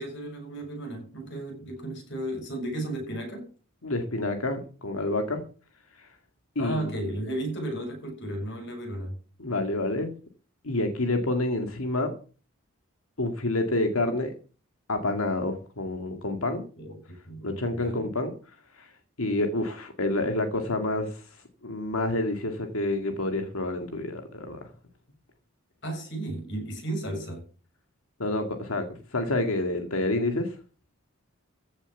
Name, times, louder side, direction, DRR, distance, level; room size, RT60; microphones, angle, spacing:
voice 1, 0.0-3.5 6.6-9.2 16.8-18.0 25.8-27.4, right 1 dB, 55° left, 7.0 m, -34 dB
voice 2, 3.8-5.4 6.0-6.1 6.6-6.9 9.4-10.1 10.6-12.1 13.2-14.3 14.9-16.6 17.4-18.3 18.8-18.9 19.2-21.2 21.6-24.6 28.2-28.9 29.1-30.6, left 2 dB, 80° left, 2.1 m, -28 dB
15.5 x 7.2 x 7.2 m
head